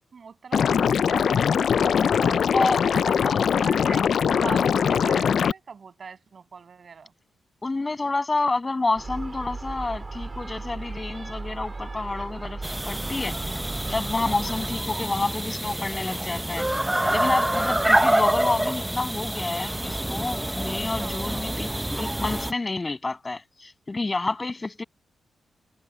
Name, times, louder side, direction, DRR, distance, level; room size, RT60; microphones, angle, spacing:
voice 1, 0.1-2.5 2.9-7.1 21.0-21.6, right 5 dB, 50° right, 7.9 m, -40 dB
Liquid, 0.5-5.5, left 7 dB, 65° left, 0.3 m, -21 dB
voice 2, 7.6-13.4 13.9-16.7 17.1-24.8, left 3 dB, 25° left, 7.2 m, -29 dB
Gull seagull, 9.0-14.9, right 3 dB, 25° right, 4.4 m, -36 dB
sound 1, 12.6-22.5, right 1 dB, 10° right, 0.6 m, -26 dB
cardioid pair, 100°, 0 cm